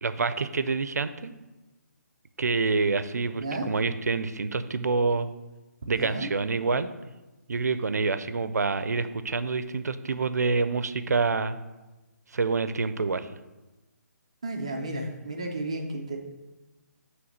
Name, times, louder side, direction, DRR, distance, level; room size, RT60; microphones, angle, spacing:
voice 1, 0.0-1.3 2.4-5.3 5.9-6.9 7.5-11.6 12.3-13.3, right 4 dB, 70° right, 12 dB, 0.5 m, -27 dB
voice 2, 3.3-3.7 6.0-6.3 8.8-9.1 14.4-16.2, right 2 dB, 20° right, 2 dB, 0.5 m, -33 dB
7.9 x 3.2 x 6.3 m, 1.1 s
hypercardioid pair, 180°, 9 cm